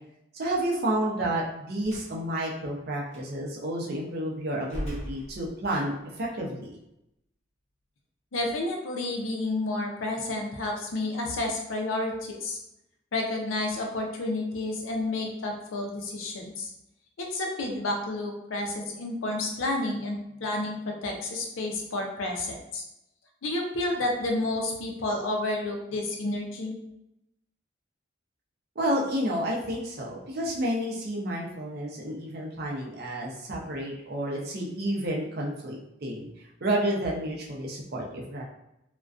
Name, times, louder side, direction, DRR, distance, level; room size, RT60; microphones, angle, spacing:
voice 1, 0.3-6.8 28.8-36.3 36.6-38.4, right 1 dB, 50° right, -2 dB, 0.5 m, -30 dB
Slam, 1.8-2.2 3.1-3.3 4.6-5.9, equal, 35° left, 0.8 m, -38 dB
voice 2, 8.3-12.6 13.1-16.7 17.2-22.8 23.4-26.8, left 2 dB, 75° left, 2 dB, 0.5 m, -30 dB
2.4 x 2.1 x 2.4 m, 0.85 s
head